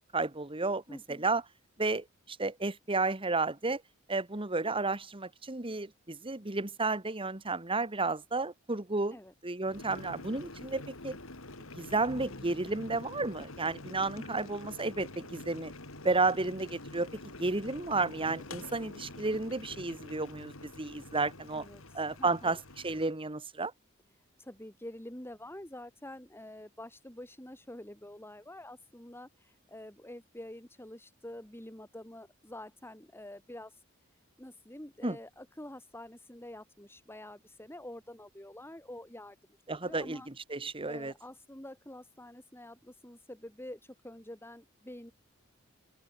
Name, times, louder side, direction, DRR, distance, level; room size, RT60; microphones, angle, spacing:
voice 1, 0.1-1.4 1.8-3.8 4.1-9.2 9.4-11.2 11.7-15.7 16.0-17.1 17.4-21.6 21.9-23.7 35.0-35.2 39.7-41.1, right 3 dB, 25° right, 1.7 m, -32 dB
voice 2, 0.9-1.3 9.1-9.3 14.2-14.5 21.5-22.6 24.4-33.8 34.4-39.4 39.7-40.3 40.9-45.1, left 1 dB, 10° left, 6.0 m, -47 dB
Boiling, 9.6-23.1, left 2 dB, 80° left, 4.0 m, -47 dB
sound 1, 11.8-15.5, left 1 dB, 55° left, 5.5 m, -54 dB
Drum, 18.6-20.9, right 2 dB, 80° right, 7.5 m, -61 dB
open air
head